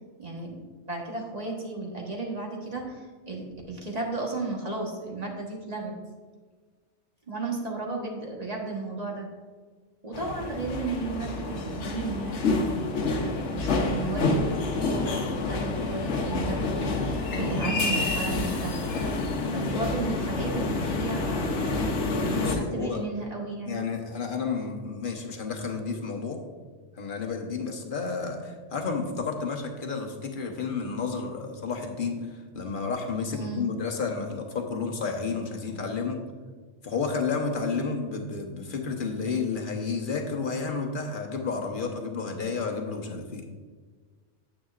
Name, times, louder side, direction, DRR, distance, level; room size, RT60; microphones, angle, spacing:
voice 1, 0.2-0.6 0.9-5.9 7.3-9.3 10.0-12.9 13.2-18.8 19.5-21.5 22.2-23.8 33.3-33.7, right 3 dB, 35° right, -1 dB, 1.3 m, -34 dB
sound 1, 10.1-22.6, left 3 dB, 80° left, 1.2 m, -28 dB
voice 2, 22.3-23.0 23.6-26.4 27.0-36.2 36.8-43.5, left 4 dB, 50° left, 3 dB, 1.1 m, -31 dB
9.3 x 8.7 x 2.5 m, 1.5 s
omnidirectional pair, 1.2 m